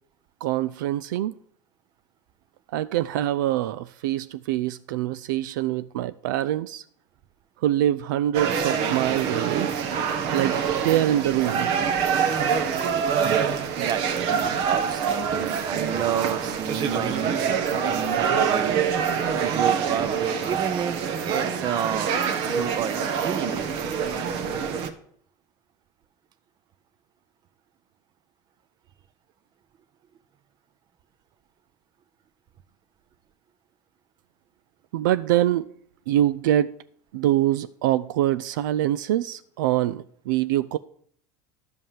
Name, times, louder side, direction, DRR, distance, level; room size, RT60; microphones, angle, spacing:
voice 1, 0.4-1.3 2.7-6.8 7.6-9.9 10.3-11.8 34.9-35.7 36.1-36.7 37.1-40.8, right 13 dB, 85° right, 0.4 m, -24 dB
sound 1, 8.3-24.9, right 7 dB, 65° right, 1.4 m, -25 dB
voice 2, 13.7-18.9 19.4-20.1 20.5-22.2 22.5-23.6, right 9 dB, 45° right, 1.0 m, -30 dB
11.5 x 5.4 x 7.4 m
supercardioid pair, 100°, 10 cm